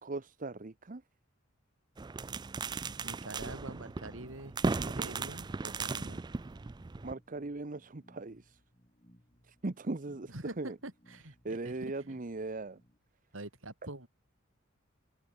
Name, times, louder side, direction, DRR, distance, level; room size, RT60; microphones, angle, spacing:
voice 1, 0.0-1.0 7.0-8.6 9.4-10.8 11.4-12.8, right 2 dB, 40° right, 0.9 m, -39 dB
sound 1, 2.0-7.1, right 4 dB, 20° right, 0.4 m, -37 dB
voice 2, 3.0-6.2 10.3-11.8 13.3-14.1, right 2 dB, 70° right, 4.3 m, -45 dB
sound 2, 4.0-13.0, equal, 25° left, 5.6 m, -65 dB
open air
head